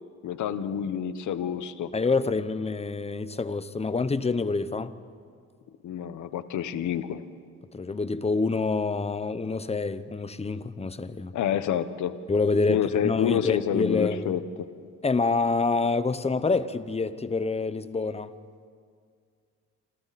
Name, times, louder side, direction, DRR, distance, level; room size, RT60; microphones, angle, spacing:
voice 1, 0.2-1.9 5.8-7.2 11.3-12.1 12.7-14.4, left 9 dB, 75° left, 1.3 m, -28 dB
voice 2, 1.9-4.9 7.7-11.3 12.3-14.3 15.0-18.3, left 4 dB, 20° left, 1.0 m, -27 dB
27.0 x 26.5 x 4.3 m
cardioid pair, 90°, 30 cm